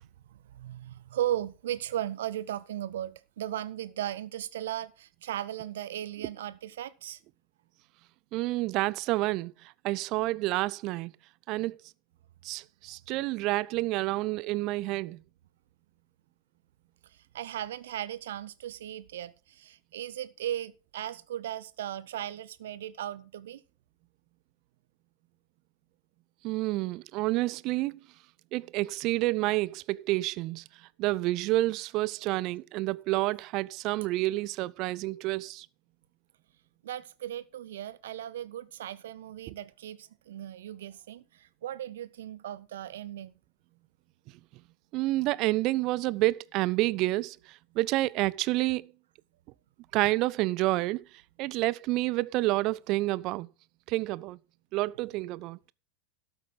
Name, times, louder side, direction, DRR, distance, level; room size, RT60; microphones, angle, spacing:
voice 1, 0.3-7.2 17.1-23.6 36.8-43.3, right 12 dB, 60° right, 0.9 m, -37 dB
voice 2, 8.3-9.5 9.8-11.1 11.5-11.8 12.4-15.2 26.4-27.9 28.5-30.6 31.0-35.7 44.9-47.4 47.8-48.9 49.9-51.0 51.4-53.5 53.9-54.4 54.7-55.6, right 19 dB, 40° right, 0.5 m, -29 dB
13.0 x 8.0 x 4.7 m
figure-of-eight pair, 90°, 0 cm